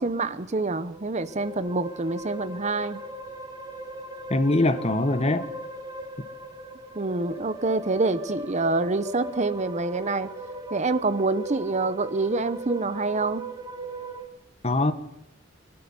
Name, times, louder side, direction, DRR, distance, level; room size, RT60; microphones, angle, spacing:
voice 1, 0.0-3.0 6.9-10.3 10.7-13.4, right 3 dB, 35° right, 13 dB, 0.9 m, -26 dB
sound 1, 0.6-14.3, right 2 dB, 20° right, 2.2 m, -38 dB
voice 2, 4.3-5.5 14.6-14.9, left 2 dB, 30° left, 11 dB, 1.2 m, -22 dB
23.5 x 12.5 x 9.5 m, 0.88 s
head